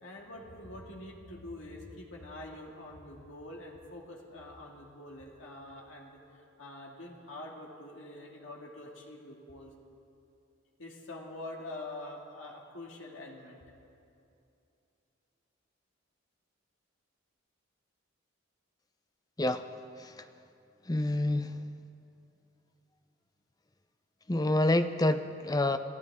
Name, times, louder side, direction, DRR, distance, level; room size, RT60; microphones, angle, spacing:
voice 1, 0.0-9.7 10.8-13.6, left 1 dB, 65° left, -1 dB, 2.2 m, -45 dB
voice 2, 20.9-21.6 24.3-25.8, left 1 dB, 20° left, 10 dB, 0.5 m, -28 dB
27.5 x 14.5 x 3.6 m, 2.7 s
head